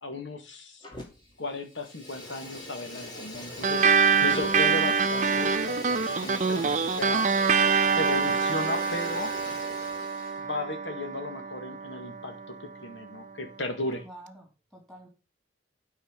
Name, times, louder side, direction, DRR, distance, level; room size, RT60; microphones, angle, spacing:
voice 1, 0.0-0.8 1.4-7.3 8.0-9.3 10.4-14.0, left 2 dB, 75° left, 5 dB, 2.0 m, -35 dB
Fire, 0.8-1.3 1.6-10.4, left 1 dB, 25° left, 2.6 m, -41 dB
sound 1, 3.6-12.5, right 5 dB, 40° right, 0.5 m, -25 dB
voice 2, 14.0-15.1, right 1 dB, ahead, 0 dB, 3.3 m, -49 dB
9.1 x 4.8 x 6.4 m, 0.31 s
head